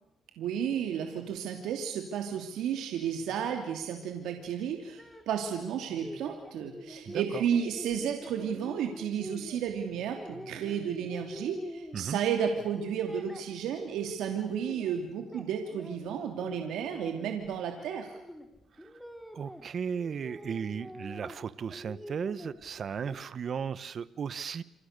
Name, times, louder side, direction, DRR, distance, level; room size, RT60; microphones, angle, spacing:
voice 1, 0.4-5.0 5.3-18.1, right 8 dB, 85° right, 5 dB, 2.8 m, -32 dB
sound 1, 4.8-12.4 12.7-14.9 15.2-19.6 19.9-21.4 21.7-23.2, equal, ahead, 4.2 m, -46 dB
voice 2, 7.1-7.4 11.9-12.2 18.8-18.9 19.3-24.6, right 7 dB, 50° right, 17 dB, 1.1 m, -35 dB
28.0 x 27.0 x 6.8 m, 0.84 s
cardioid pair, 90°, 0 cm